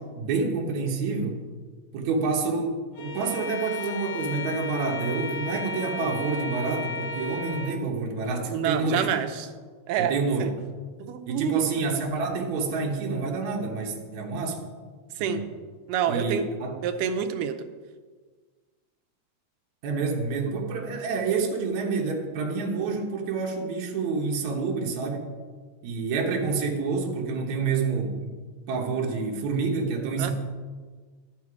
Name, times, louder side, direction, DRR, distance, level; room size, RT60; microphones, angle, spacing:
voice 1, 0.0-1.4 1.9-9.1 10.0-10.5 11.3-14.6 15.2-15.4 16.1-16.7 19.8-25.3 25.8-28.3 28.7-30.3, right 4 dB, 65° right, -1 dB, 2.4 m, -28 dB
Bowed string instrument, 3.0-7.8, left 4 dB, 85° left, 1.2 m, -34 dB
voice 2, 8.5-9.5 9.9-10.1 10.4-10.5 11.0-11.7 15.2-15.4 15.9-16.5 16.8-17.7 30.2-30.3, right 9 dB, 90° right, 8 dB, 2.3 m, -27 dB
11.5 x 7.6 x 4.8 m, 1.5 s
omnidirectional pair, 3.7 m